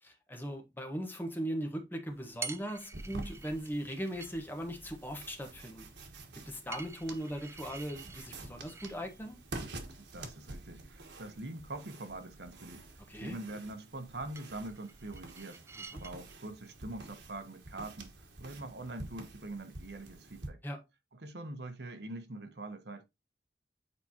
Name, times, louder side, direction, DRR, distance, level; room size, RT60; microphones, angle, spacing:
voice 1, 0.0-5.9 6.4-9.4 13.1-13.4 15.8-16.0 20.6-20.8, equal, 10° left, 1.2 m, -39 dB
sound 1, 2.1-19.6, right 4 dB, 15° right, 0.4 m, -52 dB
sound 2, 2.9-20.5, right 2 dB, 90° right, 1.4 m, -48 dB
voice 2, 10.1-12.9 13.1-15.6 15.9-20.6 21.2-23.0, right 2 dB, 70° right, 1.1 m, -44 dB
8.2 x 4.6 x 2.8 m
head